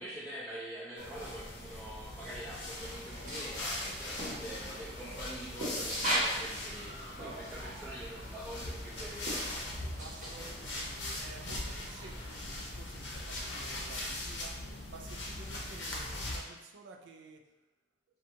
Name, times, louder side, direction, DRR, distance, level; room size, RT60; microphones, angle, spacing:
voice 1, 0.0-9.5, right 1 dB, 15° right, -13 dB, 0.7 m, -45 dB
sound 1, 1.0-16.4, left 1 dB, 90° left, 0.6 m, -40 dB
sound 2, 2.5-12.4, equal, 45° right, 0.9 m, -40 dB
voice 2, 10.0-17.5, right 3 dB, 85° right, 3 dB, 0.4 m, -52 dB
2.6 x 2.3 x 2.7 m, 1.0 s
head